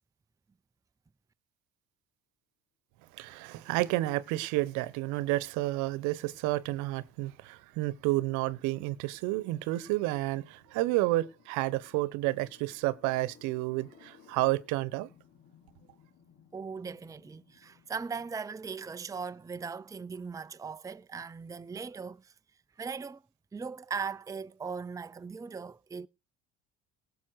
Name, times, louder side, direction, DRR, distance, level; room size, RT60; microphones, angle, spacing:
voice 1, 3.1-15.1, right 18 dB, 70° right, 1.0 m, -30 dB
sound 1, 6.2-18.3, left 7 dB, 60° left, 4.4 m, -62 dB
voice 2, 16.5-22.3 22.8-23.2 23.5-26.1, right 5 dB, 10° right, 0.5 m, -39 dB
18.5 x 7.0 x 4.6 m
hypercardioid pair, 75°, 30 cm